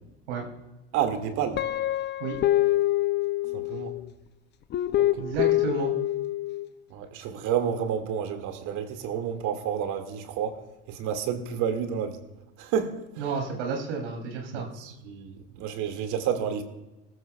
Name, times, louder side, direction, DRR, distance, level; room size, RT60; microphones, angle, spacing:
voice 1, 0.9-1.6 3.5-3.9 5.0-5.2 6.9-10.6 10.9-12.2 12.6-13.0 14.8-16.6, right 8 dB, 60° right, 6 dB, 2.1 m, -30 dB
Guitar, 1.6-4.0 4.7-6.7, left 14 dB, 30° left, 0.5 m, -25 dB
voice 2, 5.2-5.9 13.2-14.7, right 5 dB, 85° right, 0 dB, 3.2 m, -31 dB
19.0 x 15.0 x 2.3 m, 1.0 s
supercardioid pair, 110°, 34 cm